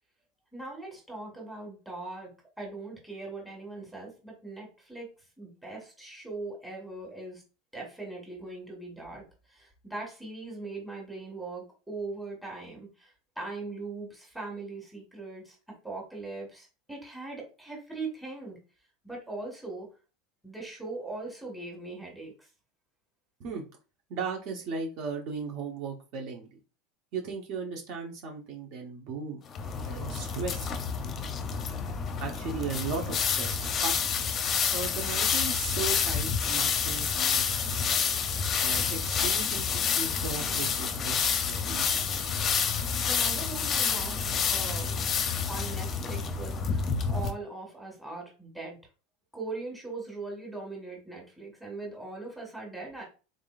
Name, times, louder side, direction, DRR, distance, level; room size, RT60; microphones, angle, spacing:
voice 1, 0.5-2.3 2.6-5.1 5.4-7.4 7.7-9.2 9.5-15.6 15.8-18.6 19.0-19.9 20.4-22.5 43.0-45.0 45.5-48.8 49.3-53.0, right 3 dB, 5° right, -2 dB, 1.6 m, -40 dB
voice 2, 24.1-26.6 27.1-29.4 29.8-30.7 32.2-33.9 34.7-38.0 38.6-42.0 42.4-42.6, right 5 dB, 50° right, 1 dB, 1.0 m, -37 dB
sound 1, 29.5-47.3, left 6 dB, 30° left, 0.6 m, -29 dB
3.8 x 3.6 x 2.4 m, 0.32 s
supercardioid pair, 145°, 0 cm